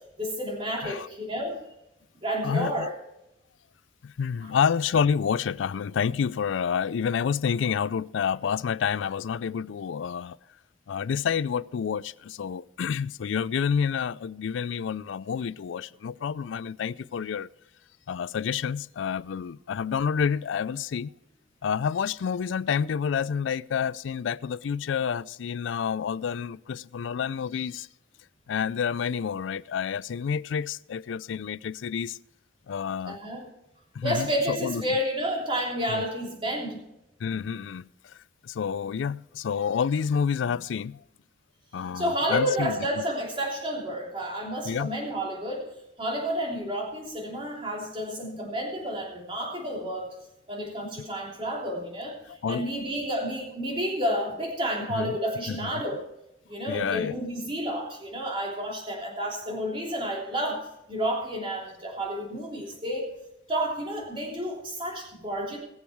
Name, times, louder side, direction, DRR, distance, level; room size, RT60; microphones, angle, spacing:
voice 1, 0.2-1.6 2.2-2.9 4.4-4.5 33.1-33.5 34.0-36.8 41.9-45.7 46.0-50.1 50.5-56.0 56.5-63.1 63.5-65.6, equal, 30° right, 3.2 m, -30 dB
voice 2, 2.4-2.9 4.0-10.4 10.9-17.5 18.1-21.1 21.6-27.9 28.5-32.2 32.7-33.2 33.9-34.8 35.9-36.1 37.2-38.2 38.4-41.0 41.7-43.0 44.7-44.9 52.3-52.7 54.9-55.2 55.5-55.7 56.7-57.2, left 7 dB, 80° left, 0.4 m, -29 dB
21.5 x 7.2 x 4.6 m
head